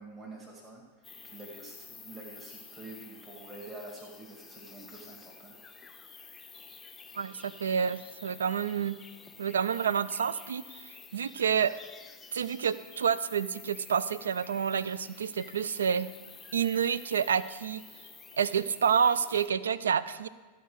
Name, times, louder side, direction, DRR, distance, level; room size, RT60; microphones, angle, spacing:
voice 1, 0.0-5.6, right 2 dB, 25° right, -4 dB, 1.9 m, -47 dB
sound 1, 1.0-19.5, left 5 dB, 15° left, 0.5 m, -50 dB
voice 2, 7.1-9.0 9.4-11.7 12.3-16.1 16.5-17.8 18.4-20.3, right 7 dB, 65° right, 17 dB, 0.3 m, -29 dB
13.5 x 5.1 x 6.4 m, 1.3 s
figure-of-eight pair, 90°, 0 cm